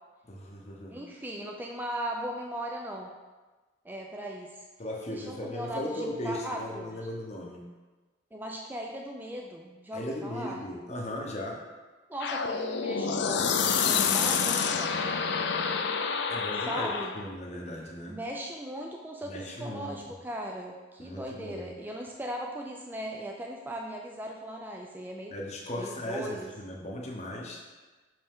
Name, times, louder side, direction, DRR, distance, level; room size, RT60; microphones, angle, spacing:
voice 1, 0.2-1.0 4.8-7.6 9.9-11.6 16.3-16.9 17.1-18.2 19.3-20.0 21.0-21.7 25.3-27.6, left 1 dB, 35° left, -1 dB, 0.8 m, -37 dB
voice 2, 0.9-3.1 3.8-4.6 5.1-7.0 8.3-10.6 12.1-15.0 16.7-17.2 18.1-25.4 25.8-26.5, right 1 dB, 10° right, 0 dB, 0.4 m, -38 dB
sound 1, 12.2-17.3, left 6 dB, 60° left, 0.4 m, -28 dB
5.9 x 5.4 x 3.6 m, 1.3 s
head